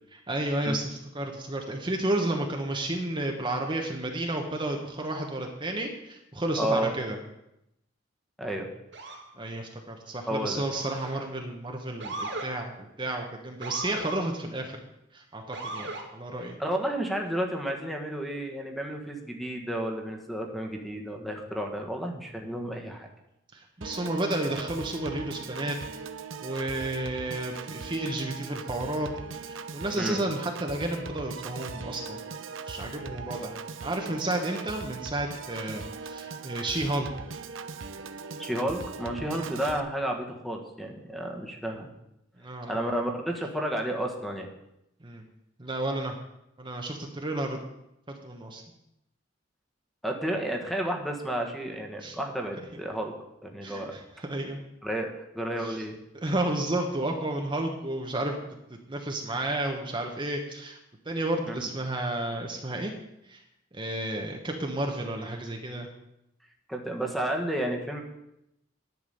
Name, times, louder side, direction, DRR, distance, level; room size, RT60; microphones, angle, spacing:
voice 1, 0.3-7.2 9.4-14.8 15.1-16.6 23.5-25.8 26.4-29.1 29.4-32.2 32.7-37.1 39.3-39.5 42.4-43.0 45.0-45.2 45.6-46.1 46.6-47.6 48.1-48.6 52.0-52.2 53.6-54.6 55.6-55.8 56.1-58.4 58.9-60.8 61.0-62.9 63.3-63.4 63.7-65.9, right 1 dB, 25° right, 2 dB, 1.1 m, -32 dB
voice 2, 6.6-6.9 8.4-8.7 10.3-10.6 16.6-23.1 30.0-30.2 38.4-41.9 42.7-44.5 50.0-53.1 53.4-53.9 54.8-56.0 61.5-61.6 66.7-68.0, right 1 dB, ahead, 2 dB, 1.4 m, -31 dB
Motor vehicle (road) / Siren, 8.9-9.3 10.7-11.3 12.0-12.5 13.6-14.2 15.5-16.1, right 2 dB, 65° right, 2.0 m, -37 dB
Piano / Organ, 23.8-39.8, right 4 dB, 90° right, 0.8 m, -40 dB
11.0 x 6.0 x 8.4 m, 0.84 s
head